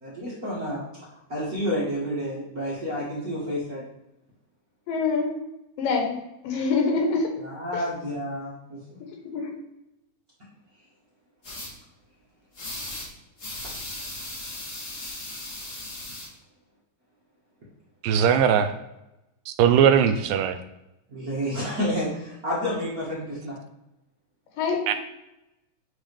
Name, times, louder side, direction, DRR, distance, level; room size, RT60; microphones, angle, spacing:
voice 1, 0.0-0.8 1.3-3.8 7.4-8.8 21.1-23.6, equal, 50° right, -7 dB, 1.1 m, -30 dB
voice 2, 4.9-5.3 5.8-6.2 6.4-7.3 7.7-7.8 9.3-9.5 24.6-24.9, left 4 dB, 90° left, 2 dB, 2.8 m, -25 dB
sound 1, 11.4-11.7 12.5-13.1 13.4-16.3, left 1 dB, 45° left, 1.0 m, -37 dB
voice 3, 18.0-18.7 19.5-20.6 24.9-25.0, right 8 dB, 85° right, 9 dB, 2.2 m, -19 dB
9.2 x 3.6 x 3.3 m, 0.90 s
omnidirectional pair, 3.8 m